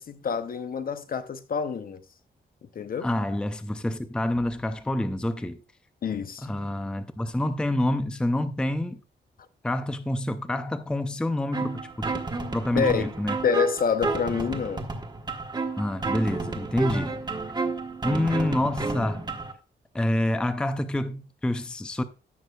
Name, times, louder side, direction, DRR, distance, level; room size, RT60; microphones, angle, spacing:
voice 1, 0.0-2.0 2.8-3.1 6.0-6.5 12.7-13.1 13.4-14.9, left 6 dB, 50° left, 0.7 m, -27 dB
voice 2, 3.0-5.6 6.4-9.0 9.6-12.1 12.5-13.4 15.8-17.1 18.0-19.2 19.9-22.0, left 1 dB, 5° left, 0.4 m, -27 dB
sound 1, 11.5-19.5, right 3 dB, 20° right, 1.3 m, -31 dB
16.5 x 6.2 x 2.3 m
wide cardioid pair, 170°, 19 cm